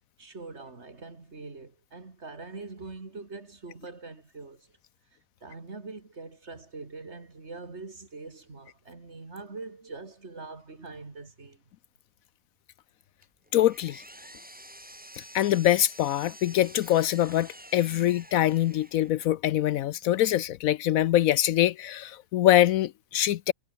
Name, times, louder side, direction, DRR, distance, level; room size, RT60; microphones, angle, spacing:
voice 1, 0.2-4.7 5.4-11.6, right 3 dB, 50° right, 3.1 m, -43 dB
Power tool, 13.2-19.3, equal, 5° right, 2.8 m, -49 dB
voice 2, 13.5-14.0 15.1-23.5, left 13 dB, 80° left, 1.0 m, -24 dB
omnidirectional pair, 1.5 m